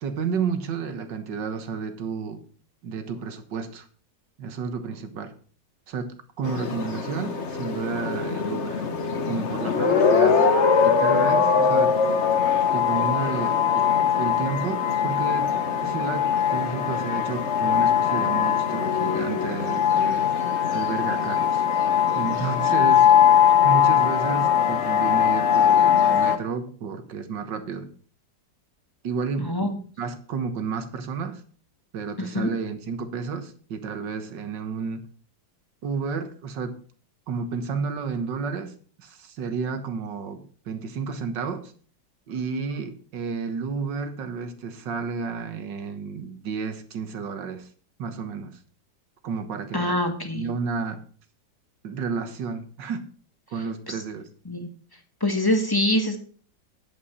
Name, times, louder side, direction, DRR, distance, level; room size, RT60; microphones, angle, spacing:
voice 1, 0.0-2.4 2.8-3.9 4.4-5.3 5.9-8.9 9.3-10.4 10.8-12.0 12.7-13.9 14.2-20.3 20.7-21.6 22.1-23.1 23.6-27.9 29.0-31.4 31.9-35.1 35.8-36.7 37.3-38.7 39.0-41.7 42.3-47.7 48.0-48.6 49.2-50.0 50.3-51.0 51.8-53.0 53.5-54.3, right 5 dB, 75° right, 9 dB, 2.0 m, -31 dB
sound 1, 6.4-26.4, left 7 dB, 45° left, 1.3 m, -21 dB
voice 2, 29.4-29.8 32.2-32.5 49.7-50.4 53.9-54.0 54.5-54.7 55.2-56.2, left 1 dB, 15° left, 5 dB, 1.4 m, -24 dB
9.7 x 8.6 x 5.6 m, 0.43 s
omnidirectional pair, 2.0 m